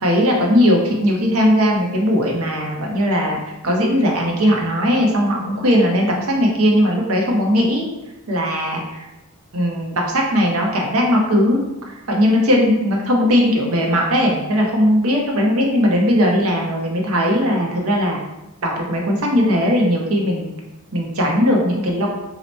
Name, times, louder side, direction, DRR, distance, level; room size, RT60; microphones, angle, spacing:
voice 1, 0.0-3.4 3.6-7.9 8.3-9.1 9.5-11.6 12.1-18.2 18.6-20.5 20.9-22.1, equal, 75° right, -1 dB, 0.7 m, -18 dB
2.8 x 2.1 x 4.1 m, 0.97 s
head